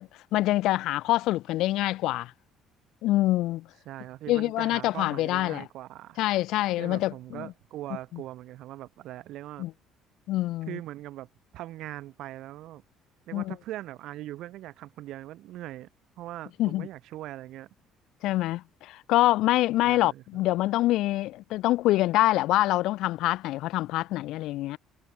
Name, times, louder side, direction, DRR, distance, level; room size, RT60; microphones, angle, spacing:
voice 1, 0.0-2.3 3.0-3.6 4.3-5.6 6.2-7.5 9.6-9.7 10.3-10.8 13.3-13.5 16.6-16.9 18.2-24.8, left 16 dB, 75° left, 0.8 m, -25 dB
voice 2, 3.9-6.2 6.8-9.7 10.7-11.3 11.5-12.8 13.3-15.9 16.2-17.7 19.8-20.5, right 15 dB, 70° right, 5.8 m, -41 dB
supercardioid pair, 75°, 0 cm